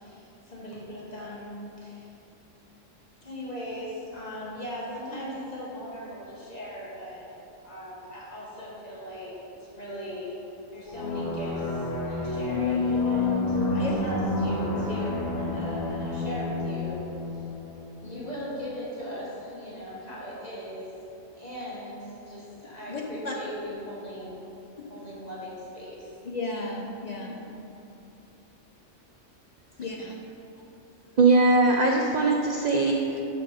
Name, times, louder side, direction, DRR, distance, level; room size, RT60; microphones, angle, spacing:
voice 1, 0.0-2.1 3.2-7.3 7.6-9.3 9.6-10.4 10.7-17.0 17.3-17.5 18.0-20.9 21.4-24.4 24.9-26.1, equal, 35° left, -7 dB, 1.2 m, -39 dB
sound 1, 10.9-18.2, left 3 dB, 80° left, 1.4 m, -29 dB
voice 2, 22.9-23.3 24.8-24.9 26.2-27.4 29.8-30.2, left 2 dB, 50° left, -1 dB, 0.5 m, -34 dB
voice 3, 31.2-33.2, right 3 dB, 80° right, 0 dB, 0.3 m, -21 dB
6.6 x 4.2 x 4.8 m, 2.9 s
omnidirectional pair, 1.3 m